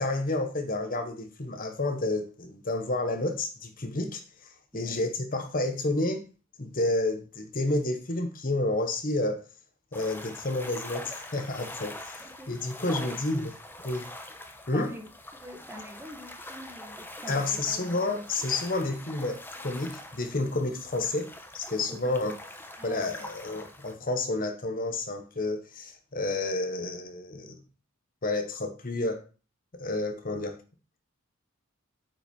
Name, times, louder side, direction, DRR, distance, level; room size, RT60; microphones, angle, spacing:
voice 1, 0.0-6.2 6.6-9.4 9.9-13.5 13.8-14.1 14.7-14.9 17.3-22.3 22.8-27.6 28.2-29.2 29.7-30.6, left 2 dB, 40° left, 1.1 m, -30 dB
sound 1, 9.9-23.9, left 1 dB, 10° left, 0.9 m, -44 dB
voice 2, 12.2-12.5 12.8-13.2 14.7-17.8 21.9-22.2 22.8-23.3, right 1 dB, 10° right, 1.5 m, -45 dB
8.9 x 5.7 x 5.3 m
head